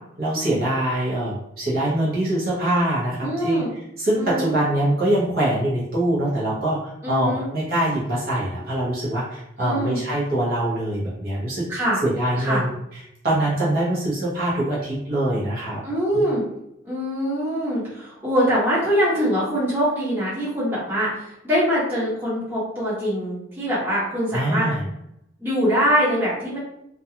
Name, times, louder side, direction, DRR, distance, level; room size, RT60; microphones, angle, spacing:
voice 1, 0.2-15.8 24.3-24.9, right 1 dB, 50° right, -7 dB, 0.8 m, -24 dB
voice 2, 3.2-3.7 4.2-4.5 7.0-7.5 9.6-10.0 11.7-12.0 12.4-12.6 15.8-16.4 16.8-24.7 25.4-26.6, equal, 10° right, -9 dB, 1.0 m, -23 dB
2.4 x 2.2 x 2.8 m, 0.79 s
head